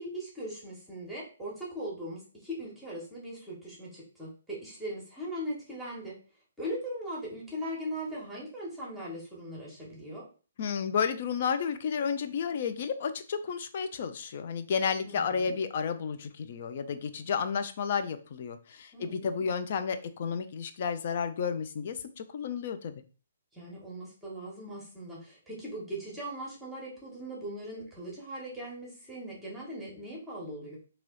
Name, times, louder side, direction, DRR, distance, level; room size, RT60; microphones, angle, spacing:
voice 1, 0.0-6.2 6.6-10.2 15.0-15.6 18.9-19.5 23.5-30.8, right 1 dB, 5° right, -5 dB, 1.3 m, -39 dB
voice 2, 10.6-22.9, left 6 dB, 45° left, 10 dB, 0.5 m, -32 dB
3.1 x 2.9 x 3.8 m, 0.36 s
figure-of-eight pair, 130°, 0 cm